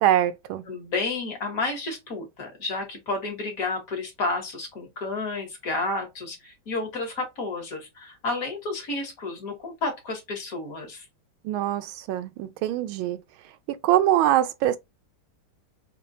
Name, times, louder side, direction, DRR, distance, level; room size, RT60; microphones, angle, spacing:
voice 1, 0.0-0.6 11.4-13.2 13.7-14.8, right 12 dB, 80° right, 1.4 m, -23 dB
voice 2, 0.7-11.0, left 3 dB, 50° left, 1.5 m, -31 dB
5.3 x 2.3 x 2.6 m
omnidirectional pair, 2.2 m